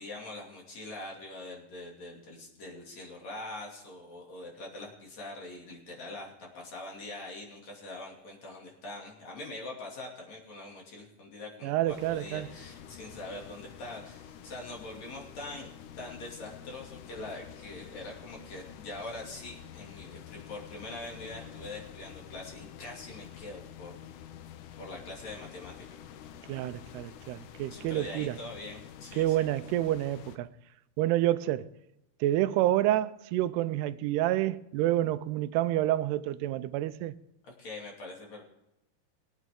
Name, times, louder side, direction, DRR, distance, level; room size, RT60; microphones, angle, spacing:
voice 1, 0.0-15.7 16.0-23.9 24.8-26.0 27.7-29.5 37.4-38.4, left 2 dB, 45° left, 3.5 m, -43 dB
voice 2, 11.6-12.5 26.5-28.4 29.2-30.5 31.0-31.7 32.2-37.1, right 14 dB, 90° right, 2.7 m, -28 dB
sound 1, 11.9-30.4, left 9 dB, 80° left, 1.8 m, -48 dB
21.5 x 9.2 x 3.7 m
omnidirectional pair, 4.6 m